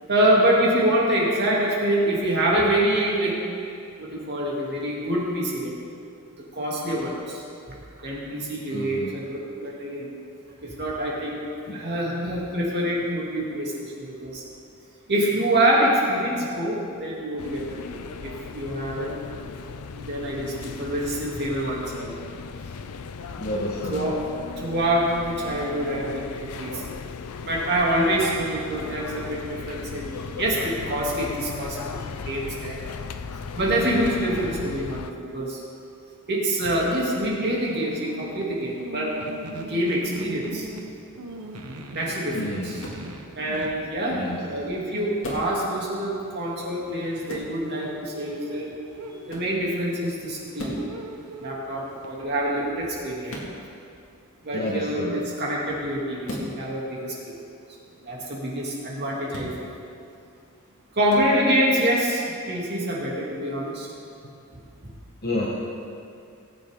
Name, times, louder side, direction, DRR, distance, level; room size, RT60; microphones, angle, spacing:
voice 1, 0.1-3.3 4.0-5.7 6.5-7.4 8.0-10.1 10.6-11.4 11.7-14.4 15.1-19.2 20.0-22.1 23.9-24.2 24.6-26.9 27.4-32.0 32.2-32.8 33.5-35.6 36.3-39.2 39.5-40.7 41.9-42.7 43.3-48.7 49.3-50.8 51.4-53.4 54.4-57.3 58.0-59.5 60.9-63.9, right 1 dB, 50° right, -4 dB, 2.6 m, -26 dB
voice 2, 8.7-9.1 11.7-11.8 23.4-24.1 33.6-33.8 42.3-42.7 44.1-44.4 54.5-55.2 65.2-65.5, left 1 dB, 45° left, -4 dB, 1.2 m, -30 dB
sound 1, 17.4-35.1, left 5 dB, 80° left, 0.5 m, -37 dB
sound 2, 37.4-52.2, right 1 dB, 85° right, 1.2 m, -41 dB
sound 3, 42.8-43.1 45.2-45.6 47.3-47.5 49.3-49.5 50.6-50.9 53.3-53.5 56.2-56.5 59.3-59.5 61.1-61.3, equal, 60° left, 2.2 m, -35 dB
18.5 x 8.7 x 3.7 m, 2.5 s
head